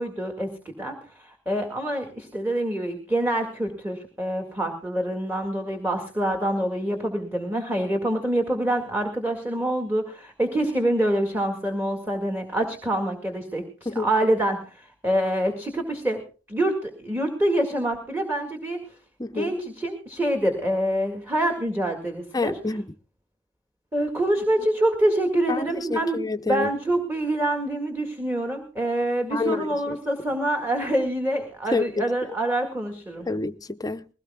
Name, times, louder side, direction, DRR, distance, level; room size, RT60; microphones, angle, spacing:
voice 1, 0.0-16.2 16.5-18.8 19.3-22.6 23.9-26.2 26.5-33.3, right 1 dB, 10° right, 1.9 m, -26 dB
voice 2, 19.2-19.5 22.3-22.9 25.5-26.7 29.3-30.0 31.7-32.1 33.3-34.0, left 3 dB, 20° left, 0.6 m, -28 dB
21.0 x 17.5 x 2.3 m
head